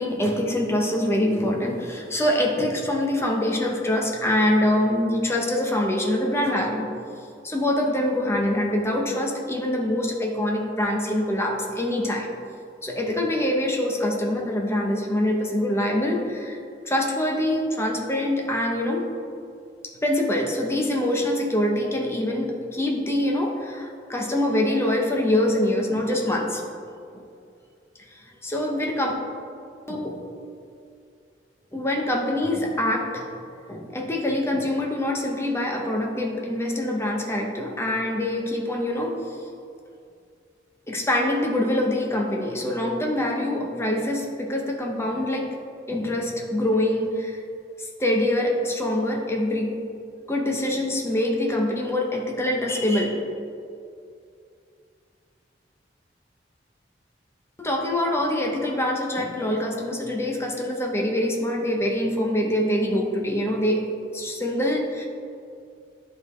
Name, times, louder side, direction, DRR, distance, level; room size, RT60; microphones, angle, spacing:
voice 1, 0.0-6.9 7.4-12.3 12.8-16.6 16.8-19.1 20.0-26.6 28.1-29.1 29.9-30.2 31.7-33.3 33.7-39.2 40.9-45.5 45.9-47.4 47.8-49.7 50.3-53.2 57.6-63.8 64.1-65.1, left 1 dB, 15° left, 0 dB, 0.7 m, -24 dB
10.5 x 3.6 x 3.1 m, 2.4 s
head